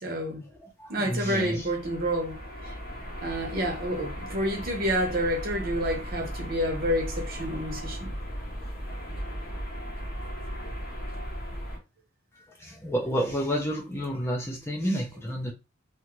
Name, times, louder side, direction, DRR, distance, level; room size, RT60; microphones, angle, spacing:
voice 1, 0.0-0.4 0.9-2.3 2.6-2.7 3.2-8.1, equal, 45° right, 0.8 m, -29 dB
voice 2, 0.6-1.7 12.5-15.5, equal, 10° left, 0.5 m, -30 dB
sound 1, 1.1-11.8, equal, 40° left, 0.8 m, -37 dB
2.7 x 2.4 x 3.0 m
head